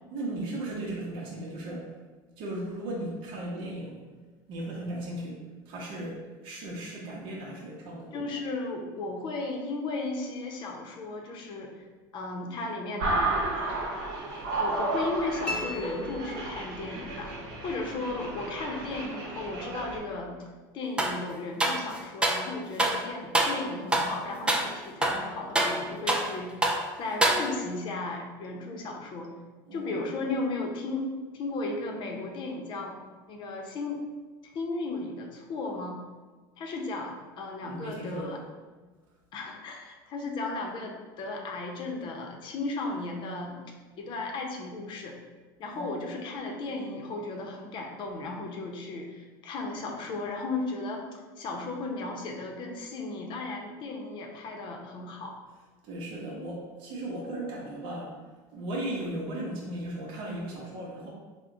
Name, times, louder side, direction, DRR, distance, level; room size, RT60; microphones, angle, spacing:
voice 1, 0.1-1.9 2.4-4.0 4.5-5.4 5.7-8.1 29.7-30.0 37.6-38.4 45.7-46.1 55.8-58.2 58.5-61.1, right 1 dB, 60° right, -4 dB, 0.8 m, -36 dB
voice 2, 8.1-11.7 12.1-13.3 14.6-20.4 20.7-26.6 27.0-29.3 29.7-31.1 31.3-33.0 33.3-34.0 34.4-36.0 36.6-38.4 39.3-43.6 44.0-45.2 45.6-55.4, left 3 dB, 50° left, 1 dB, 0.7 m, -35 dB
sound 1, 13.0-20.0, right 2 dB, 90° right, 0.8 m, -32 dB
sound 2, 15.4-17.0, left 2 dB, 10° left, 0.9 m, -37 dB
sound 3, 21.0-21.2 21.6-22.5 22.8-23.0 23.3-23.6 23.9-24.2 24.5-24.7 25.0-26.3 26.6-26.8 27.2-27.8, right 1 dB, 10° right, 0.4 m, -26 dB
3.5 x 2.2 x 3.8 m, 1.3 s
supercardioid pair, 110°, 10 cm